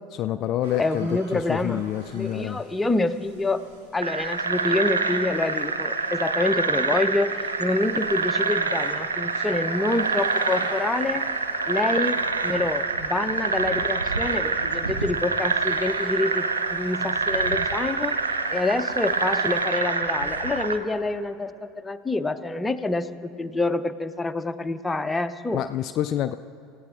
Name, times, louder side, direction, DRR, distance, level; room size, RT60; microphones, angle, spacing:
voice 1, 0.2-2.6 25.5-26.3, left 12 dB, 45° left, 11 dB, 0.3 m, -27 dB
sound 1, 0.6-19.7, right 2 dB, 65° right, 2.1 m, -45 dB
voice 2, 0.7-1.8 2.1-3.6 3.9-11.3 11.7-18.2 18.5-25.6, left 2 dB, 10° left, 9 dB, 0.7 m, -27 dB
sound 2, 4.0-20.8, right 4 dB, 80° right, 0.7 m, -26 dB
28.0 x 15.5 x 2.6 m, 2.4 s
figure-of-eight pair, 70°, 0 cm